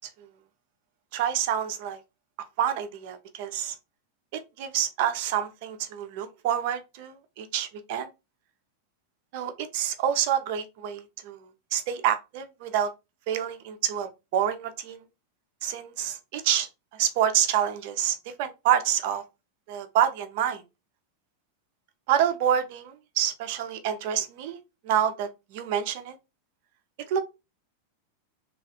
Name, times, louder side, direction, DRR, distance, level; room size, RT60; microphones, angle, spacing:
voice 1, 1.1-2.0 2.6-3.7 4.3-8.1 9.3-12.9 13.3-15.0 15.6-19.2 19.7-20.6 22.1-24.6 24.8-26.2 27.1-27.2, right 10 dB, 50° right, 0.4 m, -27 dB
3.1 x 2.3 x 2.6 m
figure-of-eight pair, 90°, 0 cm